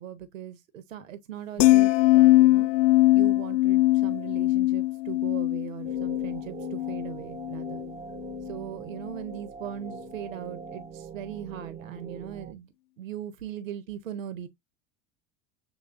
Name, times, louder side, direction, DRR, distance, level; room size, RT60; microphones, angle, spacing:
voice 1, 0.0-2.7 3.1-7.9 8.4-14.5, right 10 dB, 85° right, 0.7 m, -39 dB
sound 1, 1.6-7.9 8.2-8.5, left 17 dB, 50° left, 0.5 m, -22 dB
sound 2, 5.8-12.5, right 6 dB, 15° right, 0.4 m, -42 dB
7.1 x 3.1 x 2.4 m
hypercardioid pair, 80°, 38 cm